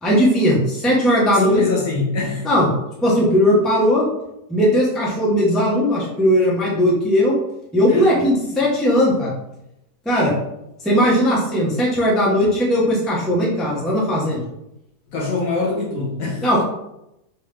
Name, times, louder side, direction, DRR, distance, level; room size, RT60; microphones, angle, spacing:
voice 1, 0.0-1.6 2.4-2.7 3.0-4.1 4.5-7.4 7.7-9.3 10.0-10.3 10.8-14.4 16.4-16.6, equal, ahead, -5 dB, 0.6 m, -18 dB
voice 2, 1.3-2.5 7.9-8.2 15.1-16.5, left 3 dB, 65° left, -2 dB, 1.3 m, -24 dB
3.5 x 3.0 x 3.3 m, 0.86 s
omnidirectional pair, 1.6 m